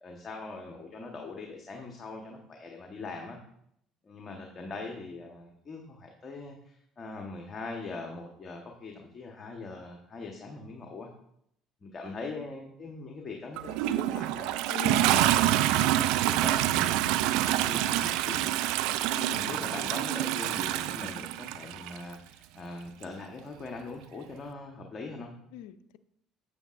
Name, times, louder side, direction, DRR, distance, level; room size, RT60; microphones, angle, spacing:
voice 1, 0.0-3.4 4.0-11.1 11.8-15.5 16.1-18.5 19.3-25.3, left 3 dB, 40° left, 1 dB, 1.2 m, -42 dB
voice 2, 12.0-12.5 14.7-15.5 19.0-19.6 25.5-26.0, left 11 dB, 75° left, 13 dB, 0.5 m, -42 dB
Toilet flush, 13.6-22.0 23.0-23.1, right 13 dB, 75° right, 0.3 m, -27 dB
9.2 x 8.4 x 2.6 m, 0.73 s
hypercardioid pair, 65°, 0 cm